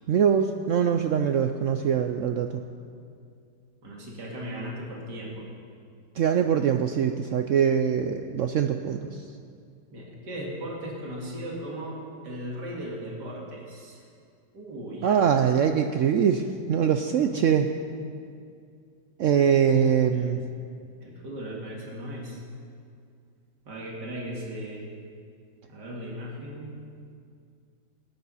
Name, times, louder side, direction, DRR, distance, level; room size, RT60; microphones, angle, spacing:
voice 1, 0.1-2.5 6.2-9.0 15.0-16.4 16.7-17.7 19.2-20.4, right 8 dB, 70° right, 7 dB, 0.7 m, -23 dB
voice 2, 3.8-5.5 9.9-14.0 14.5-15.5 20.1-20.3 21.0-22.4 23.6-24.9 25.7-26.7, equal, 85° right, -3 dB, 2.7 m, -37 dB
17.0 x 9.4 x 5.6 m, 2.3 s
omnidirectional pair, 1.8 m